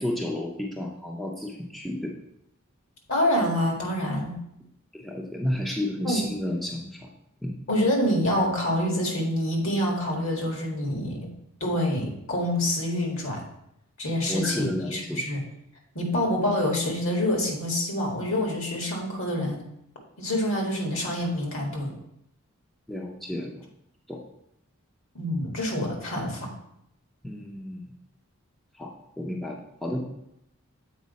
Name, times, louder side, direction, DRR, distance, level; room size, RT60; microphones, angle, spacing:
voice 1, 0.0-2.1 4.9-7.1 7.4-7.5 14.3-15.2 22.9-23.6 24.1-24.2 27.2-27.8 28.7-30.0, left 1 dB, ahead, -2 dB, 0.6 m, -32 dB
voice 2, 3.1-4.4 6.0-6.2 7.7-11.3 11.6-13.4 14.0-15.4 16.0-19.6 20.2-21.9 25.2-26.5, left 1 dB, 65° left, 0 dB, 1.8 m, -26 dB
7.5 x 4.6 x 4.1 m, 0.78 s
head